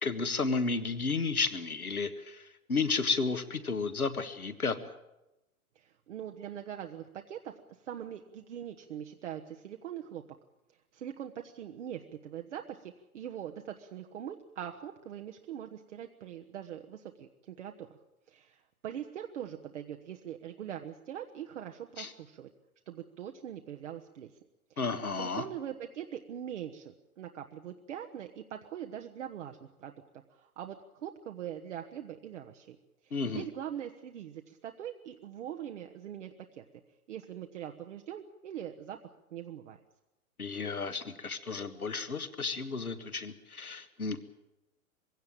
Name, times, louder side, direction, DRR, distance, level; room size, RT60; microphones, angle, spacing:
voice 1, 0.0-2.4 2.7-4.8 22.0-22.1 24.8-25.4 33.1-33.4 40.4-44.2, left 4 dB, 80° left, 10 dB, 1.7 m, -32 dB
voice 2, 5.7-7.5 7.8-10.2 10.9-18.0 18.3-22.5 22.9-24.3 24.7-24.8 25.1-29.9 30.3-32.8 33.0-36.6 37.1-39.0 39.3-39.8, right 10 dB, 55° right, 3 dB, 1.3 m, -42 dB
22.0 x 16.5 x 9.0 m, 0.95 s
figure-of-eight pair, 105°, 43 cm